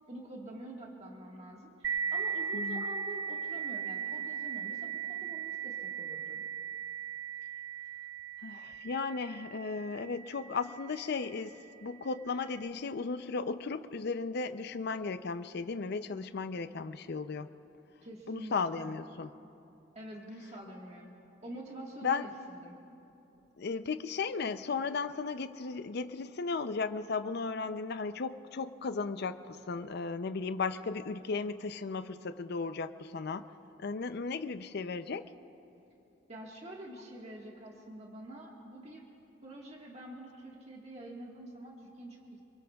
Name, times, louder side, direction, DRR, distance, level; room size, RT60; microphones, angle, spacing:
voice 1, 0.0-6.5 18.0-18.9 19.9-21.1 21.4-22.7 36.3-39.0 39.4-42.4, right 1 dB, 35° right, -2 dB, 1.6 m, -47 dB
sound 1, 1.8-11.1, right 7 dB, 80° right, 1.1 m, -38 dB
voice 2, 2.5-2.9 8.4-11.5 11.8-17.5 18.3-19.3 22.0-22.3 23.6-33.5 33.8-35.2, left 4 dB, 60° left, 11 dB, 0.5 m, -35 dB
26.5 x 22.5 x 2.4 m, 2.9 s
head